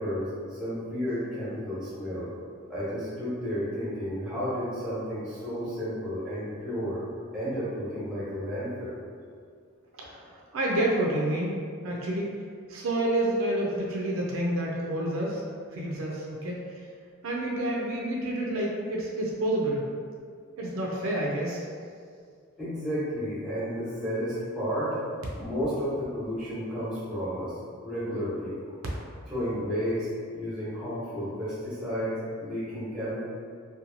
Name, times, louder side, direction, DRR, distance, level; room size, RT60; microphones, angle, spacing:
voice 1, 0.0-2.3 2.7-7.0 7.3-9.0 22.6-25.0 25.3-27.5 27.8-28.8 29.3-30.1 30.3-32.1 32.4-33.3, equal, 5° right, -11 dB, 1.0 m, -32 dB
voice 2, 10.5-12.4 12.7-15.4 15.7-16.7 17.2-19.9 20.6-21.6, right 1 dB, 75° right, -3 dB, 0.4 m, -29 dB
2.9 x 2.2 x 2.5 m, 2.1 s
head